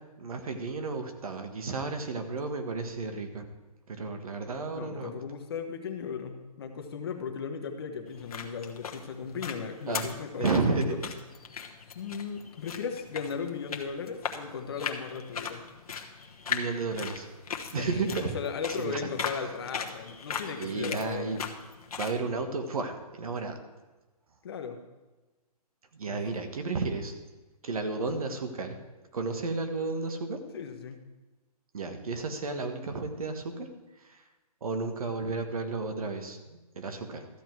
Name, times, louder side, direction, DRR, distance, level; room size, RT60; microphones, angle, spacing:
voice 1, 0.2-3.5 3.9-5.1 9.9-10.1 10.4-10.9 16.5-17.3 17.7-18.3 18.8-19.1 20.6-21.4 22.0-23.5 25.9-27.1 27.6-28.8 29.1-30.4 31.7-33.7 34.0-34.2 34.6-37.3, right 3 dB, 65° right, 6 dB, 1.5 m, -32 dB
voice 2, 4.7-11.0 11.9-15.6 17.8-21.4 24.4-24.8 26.1-26.2 30.5-31.0, left 6 dB, 40° left, 5 dB, 1.1 m, -36 dB
sound 1, 8.1-22.2, left 6 dB, 65° left, 1.3 m, -39 dB
13.5 x 7.9 x 4.6 m, 1.2 s
hypercardioid pair, 170°, 20 cm